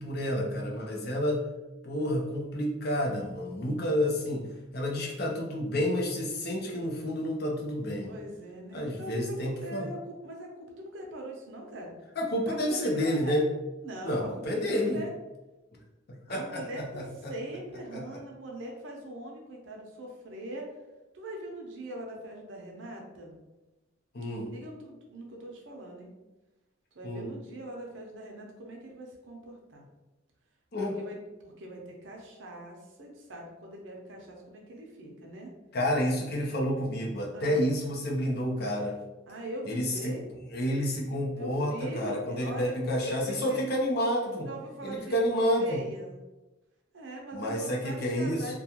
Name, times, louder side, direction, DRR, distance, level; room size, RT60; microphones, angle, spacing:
voice 1, 0.0-1.4 1.8-4.5 4.7-8.1 8.7-9.9 12.2-13.5 14.0-15.0 16.3-17.3 17.9-18.0 24.1-24.5 27.0-27.3 30.7-31.0 35.7-39.0 39.7-40.1 40.5-44.5 44.8-45.8 47.3-48.6, equal, 50° left, -1 dB, 0.5 m, -29 dB
voice 2, 8.1-11.9 12.5-13.4 13.8-15.1 16.3-20.7 21.1-23.4 24.5-26.1 26.9-29.9 30.8-31.2 31.4-35.5 37.3-37.6 39.3-40.3 41.3-42.7 43.0-43.6 44.4-46.2 46.9-48.6, right 1 dB, 70° right, 0 dB, 0.6 m, -41 dB
2.3 x 2.3 x 2.8 m, 1.1 s
head